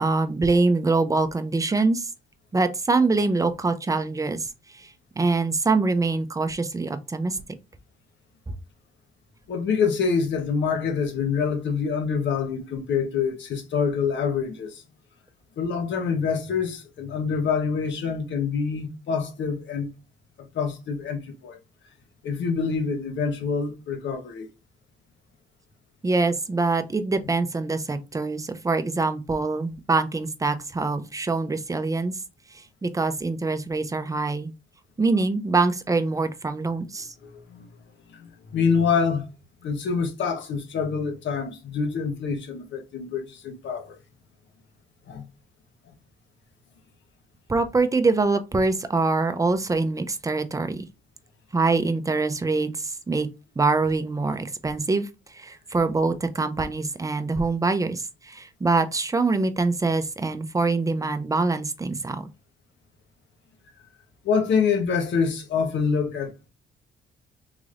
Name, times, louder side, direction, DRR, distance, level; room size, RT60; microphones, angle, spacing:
voice 1, 0.0-2.1 2.5-4.5 4.7-4.9 5.2-7.4 26.0-32.1 32.8-34.5 35.0-37.1 47.5-50.9 51.5-53.3 53.6-55.1 55.3-62.3, right 3 dB, 15° right, 0.5 m, -24 dB
voice 2, 9.5-14.8 15.6-19.9 20.5-21.6 22.2-24.5 37.2-37.7 38.1-39.3 39.6-44.0 45.1-45.2 64.2-66.3, left 5 dB, 65° left, 1.1 m, -26 dB
3.9 x 3.1 x 2.5 m
cardioid pair, 90°, 20 cm